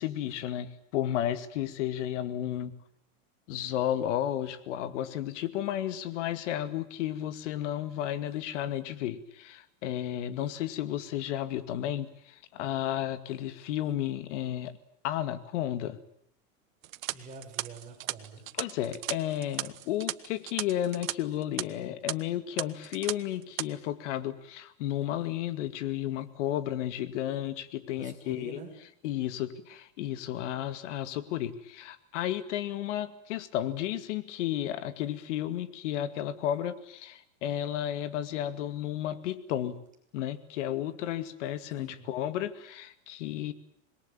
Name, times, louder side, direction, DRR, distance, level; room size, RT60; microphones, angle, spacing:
voice 1, 0.0-2.7 3.5-14.7 15.0-16.0 18.6-28.6 29.0-39.8 40.1-43.5, left 11 dB, 60° left, 12 dB, 2.4 m, -33 dB
sound 1, 16.8-21.1 21.4-21.6 22.1-22.2 22.6-23.1 23.4-23.7, right 15 dB, 80° right, 1.3 m, -36 dB
voice 2, 17.1-18.5 28.0-28.7 41.8-42.1, right 4 dB, 20° right, 2 dB, 6.6 m, -46 dB
26.5 x 21.5 x 9.0 m, 0.70 s
supercardioid pair, 150°, 40 cm